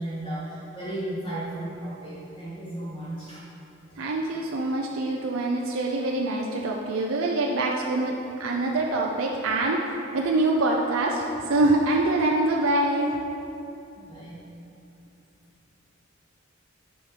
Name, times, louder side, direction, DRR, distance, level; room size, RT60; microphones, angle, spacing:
voice 1, 0.0-3.4 14.0-14.4, right 1 dB, 25° left, -10 dB, 2.0 m, -34 dB
voice 2, 4.0-9.8 10.1-13.2, right 2 dB, 80° right, -1 dB, 0.6 m, -25 dB
9.8 x 5.1 x 5.0 m, 2.8 s
head